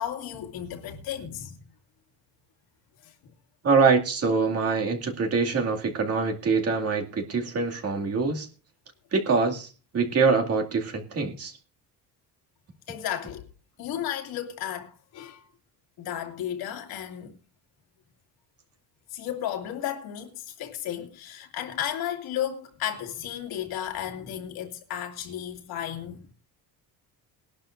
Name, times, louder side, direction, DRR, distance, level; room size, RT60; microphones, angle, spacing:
voice 1, 0.0-1.5 3.0-3.1 12.9-13.5 13.8-15.4 16.0-17.4 19.1-26.2, left 10 dB, 75° left, 2.5 m, -33 dB
voice 2, 3.6-8.5 9.1-9.7 9.9-11.5, right 4 dB, 40° right, 2.3 m, -24 dB
21.0 x 11.5 x 2.6 m
cardioid pair, 155°, 37 cm